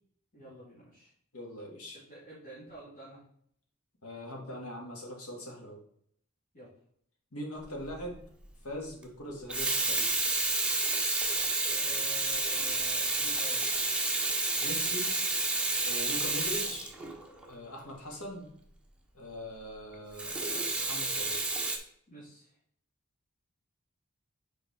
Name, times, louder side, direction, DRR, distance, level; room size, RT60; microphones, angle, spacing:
voice 1, 0.3-1.1 1.9-3.2 6.5-6.7 11.7-13.6 22.1-22.5, right 1 dB, 40° left, -9 dB, 2.6 m, -49 dB
voice 2, 1.3-2.0 4.0-5.8 7.3-8.2 8.6-10.1 14.6-15.1 15.8-16.9 17.5-18.5 19.1-21.4, equal, 75° left, 0 dB, 1.9 m, -41 dB
Water tap faucet / Sink (filling or washing), 7.7-8.0 9.3-17.5 20.2-21.8, right 2 dB, 5° right, 1.0 m, -30 dB
6.7 x 4.8 x 4.2 m, 0.66 s
head